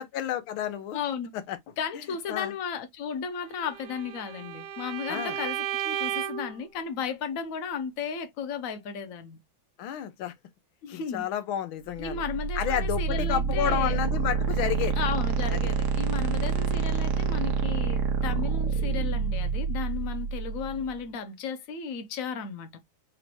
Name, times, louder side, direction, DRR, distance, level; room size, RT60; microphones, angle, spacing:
voice 1, 0.0-1.0 1.5-1.6 2.3-2.5 5.1-5.4 9.8-10.3 10.9-12.2 12.6-15.0 15.5-15.6, left 10 dB, 85° left, 1.6 m, -30 dB
voice 2, 0.9-1.3 1.8-9.4 10.8-11.3 12.0-14.0 15.0-22.7, left 6 dB, 55° left, 1.0 m, -34 dB
Bowed string instrument, 3.5-6.6, right 10 dB, 90° right, 1.5 m, -34 dB
sound 1, 12.0-20.9, right 5 dB, 60° right, 0.8 m, -27 dB
5.0 x 2.6 x 3.0 m
omnidirectional pair, 2.2 m